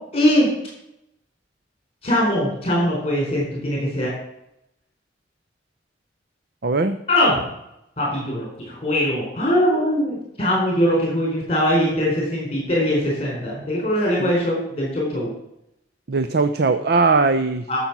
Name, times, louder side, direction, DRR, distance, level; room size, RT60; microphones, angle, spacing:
voice 1, 0.1-0.5 2.0-4.1 7.1-7.4 8.0-15.3 17.7-17.8, equal, 30° left, -2 dB, 4.1 m, -21 dB
voice 2, 6.6-7.0 14.2-14.3 16.1-17.7, right 3 dB, 55° right, 10 dB, 0.6 m, -19 dB
13.0 x 7.0 x 6.0 m, 0.81 s
head